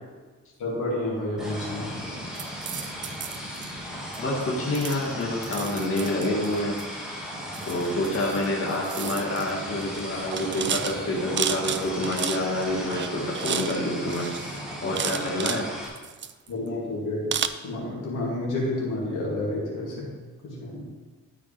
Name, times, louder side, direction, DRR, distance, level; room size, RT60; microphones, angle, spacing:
voice 1, 0.6-2.0 16.5-17.3 17.6-20.1 20.4-20.8, left 1 dB, 90° left, -5 dB, 2.6 m, -30 dB
sound 1, 1.4-15.9, equal, ahead, 2.0 m, -36 dB
sound 2, 2.3-3.7 4.1-4.4 4.7-6.8 7.5-8.4 8.7-9.5 9.8-10.0 10.3-12.6 12.9-13.8 14.1-15.6 15.9-16.7 17.3-17.5, right 8 dB, 40° right, 0.4 m, -32 dB
voice 2, 4.2-6.8 7.6-14.3 14.8-15.7, left 1 dB, 45° left, -4 dB, 1.8 m, -27 dB
12.5 x 5.0 x 3.4 m, 1.4 s
cardioid pair, 120°, 30 cm